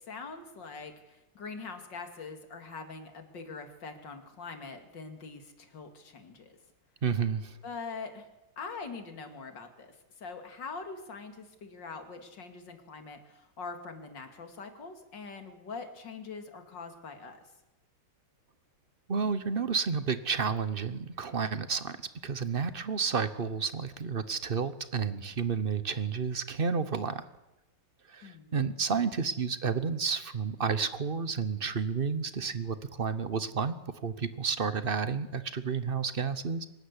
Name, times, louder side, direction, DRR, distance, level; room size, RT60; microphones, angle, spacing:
voice 1, 0.0-6.6 7.6-8.3 8.6-17.4 28.2-28.6, left 4 dB, 65° left, 6 dB, 3.0 m, -43 dB
voice 2, 7.0-7.6 19.1-22.0 22.2-27.2 28.1-33.7 34.0-36.7, right 5 dB, 40° right, 13 dB, 0.8 m, -31 dB
24.0 x 13.5 x 9.8 m, 0.99 s
omnidirectional pair, 2.2 m